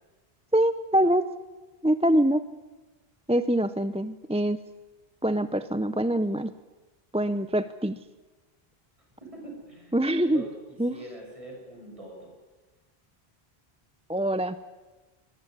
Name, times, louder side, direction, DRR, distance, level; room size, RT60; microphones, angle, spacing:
voice 1, 0.5-1.3 1.8-2.4 3.3-4.6 5.2-6.5 7.1-8.0 9.9-10.4 10.8-11.0 14.1-14.6, right 1 dB, 10° right, 12 dB, 0.5 m, -24 dB
voice 2, 9.2-12.3, right 1 dB, 30° right, 0 dB, 7.8 m, -44 dB
22.0 x 19.0 x 9.9 m, 1.2 s
omnidirectional pair, 1.0 m